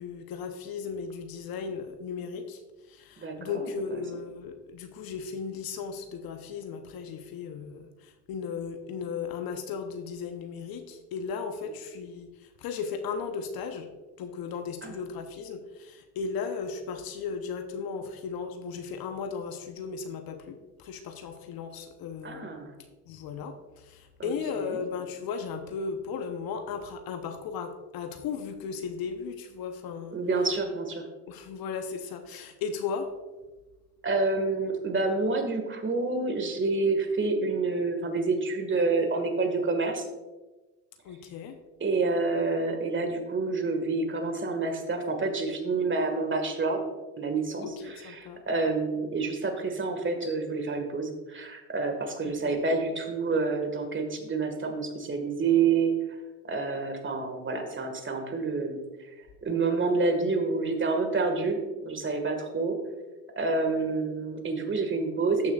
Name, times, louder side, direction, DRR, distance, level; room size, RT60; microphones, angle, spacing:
voice 1, 0.0-2.6 2.9-12.3 12.6-13.9 14.2-22.5 23.1-30.2 31.3-33.1 41.0-41.6 47.6-48.4 52.2-52.6, left 5 dB, 50° left, 7 dB, 0.9 m, -36 dB
voice 2, 3.2-4.0 14.8-15.0 22.2-22.7 24.2-24.8 30.1-31.0 34.0-40.1 41.8-46.8 47.2-55.9 56.4-59.1 59.4-62.8 63.4-65.5, right 3 dB, 25° right, 5 dB, 1.8 m, -28 dB
13.5 x 6.3 x 2.4 m, 1.2 s
hypercardioid pair, 80°, 48 cm